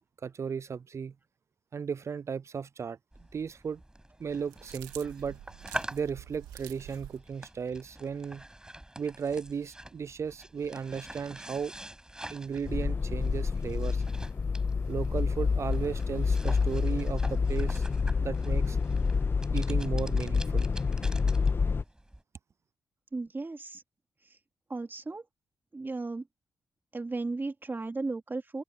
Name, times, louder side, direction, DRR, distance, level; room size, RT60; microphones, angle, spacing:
voice 1, 0.2-1.1 1.7-3.0 3.3-3.8 4.2-5.4 5.9-8.5 9.0-11.7 12.3-14.0 14.9-17.8 18.2-18.8 19.5-20.7, right 6 dB, 50° right, 0.4 m, -35 dB
sound 1, 3.1-22.2, right 1 dB, 10° right, 5.6 m, -46 dB
sound 2, 4.3-7.2, right 13 dB, 90° right, 2.2 m, -47 dB
sound 3, 12.6-21.8, left 5 dB, 35° left, 0.4 m, -28 dB
voice 2, 23.1-23.8 24.2-24.4 24.7-25.2 25.7-26.2 26.9-28.6, right 3 dB, 35° right, 2.7 m, -35 dB
supercardioid pair, 45°, 6 cm